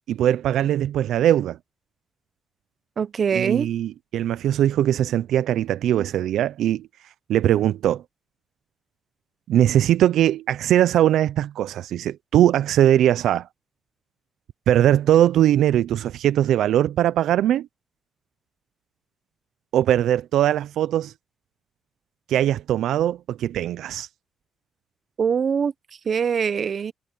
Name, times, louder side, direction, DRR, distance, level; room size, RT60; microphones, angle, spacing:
voice 1, 0.1-1.6 3.3-6.9 7.3-8.0 9.5-13.5 14.7-17.7 19.7-21.1 22.3-24.1, right 11 dB, 75° right, 0.5 m, -20 dB
voice 2, 3.0-3.7 25.2-25.7 26.1-26.9, right 6 dB, 50° right, 0.8 m, -23 dB
cardioid pair, 90°, 0 cm